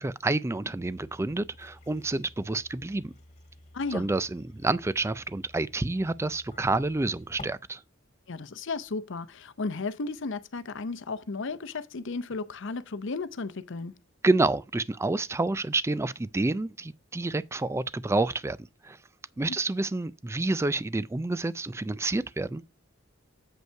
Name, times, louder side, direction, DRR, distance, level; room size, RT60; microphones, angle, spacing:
voice 1, 0.0-3.1 3.9-7.8 14.2-18.6 18.8-19.0 19.4-22.6, right 2 dB, 15° right, 0.3 m, -28 dB
sound 1, 0.8-7.4, left 2 dB, 35° left, 2.2 m, -51 dB
voice 2, 3.7-4.1 8.3-14.0, left 3 dB, 65° left, 0.7 m, -34 dB
7.9 x 5.4 x 4.5 m
head